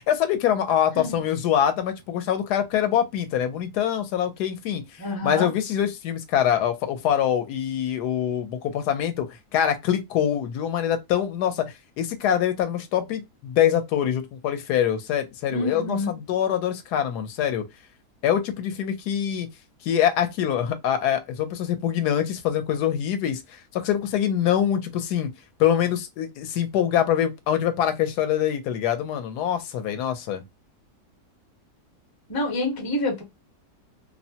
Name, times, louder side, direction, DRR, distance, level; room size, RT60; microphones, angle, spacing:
voice 1, 0.0-4.8 5.2-17.6 18.2-19.5 19.8-25.3 25.6-30.4, left 10 dB, 80° left, 1.1 m, -24 dB
voice 2, 5.0-5.5 15.5-16.1 32.3-33.2, left 2 dB, 30° left, 0.4 m, -27 dB
2.8 x 2.1 x 2.7 m
omnidirectional pair, 1.7 m